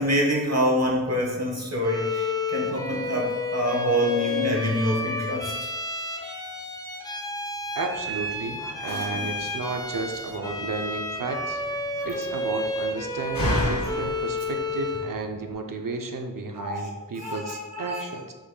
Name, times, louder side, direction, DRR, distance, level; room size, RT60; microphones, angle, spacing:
voice 1, 0.0-5.5 8.8-9.2 16.6-16.8 17.2-18.0, equal, 45° right, -2 dB, 1.2 m, -26 dB
Bowed string instrument, 1.8-15.2, left 2 dB, 10° left, 0.6 m, -31 dB
voice 2, 7.8-11.6 12.0-18.3, right 3 dB, 70° right, 4 dB, 0.6 m, -33 dB
Slam, 7.9-15.5, left 1 dB, 75° left, 1.0 m, -35 dB
5.7 x 4.1 x 2.2 m, 1.2 s
wide cardioid pair, 40°, 35 cm